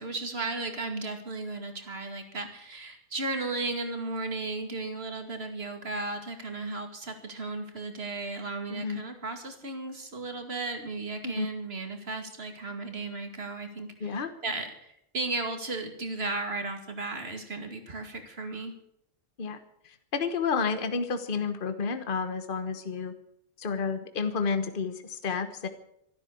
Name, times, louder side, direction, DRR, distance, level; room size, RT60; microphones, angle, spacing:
voice 1, 0.0-18.7, right 3 dB, 55° right, 5 dB, 2.6 m, -35 dB
voice 2, 8.7-9.0 11.2-11.5 14.0-14.3 19.4-19.6 19.8-23.1 23.6-25.7, left 5 dB, 45° left, 9 dB, 1.4 m, -30 dB
13.5 x 12.5 x 8.4 m, 0.75 s
omnidirectional pair, 1.3 m